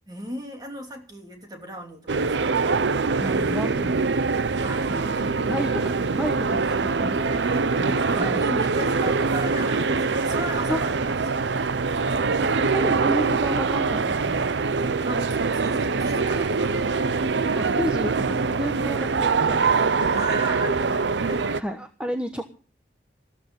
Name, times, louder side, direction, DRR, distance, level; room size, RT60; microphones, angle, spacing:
voice 1, 0.1-2.6 4.6-5.7 7.8-11.5 14.8-17.2 20.1-21.7, right 1 dB, 20° right, 3 dB, 2.8 m, -37 dB
sound 1, 2.1-21.6, right 4 dB, 85° right, 0.7 m, -23 dB
voice 2, 3.2-4.3 5.5-7.2 7.8-8.9 10.7-10.8 12.4-14.5 17.6-20.3 21.6-22.4, equal, 5° right, 6 dB, 1.1 m, -32 dB
14.5 x 13.5 x 5.4 m, 0.39 s
head